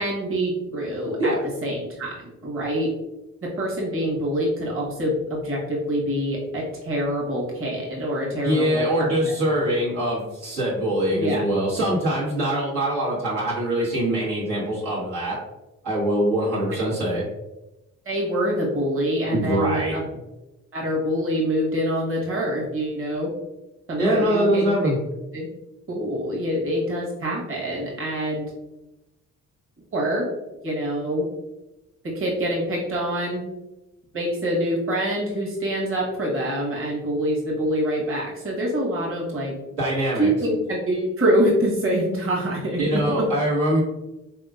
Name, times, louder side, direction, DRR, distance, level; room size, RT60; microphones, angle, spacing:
voice 1, 0.0-1.3 1.6-2.2 2.4-2.9 3.4-9.3 11.1-11.4 18.0-20.1 20.7-23.3 23.9-24.9 25.3-25.5 25.9-28.5 29.9-30.2 30.6-31.2 32.1-33.4 34.1-39.5 40.1-43.2, equal, 35° right, -4 dB, 1.3 m, -25 dB
voice 2, 8.4-15.4 15.8-17.2 19.3-19.9 24.0-25.0 39.8-40.3 42.8-43.8, right 1 dB, 70° right, -7 dB, 1.5 m, -23 dB
3.7 x 2.8 x 2.5 m, 0.98 s
hypercardioid pair, 45°, 39 cm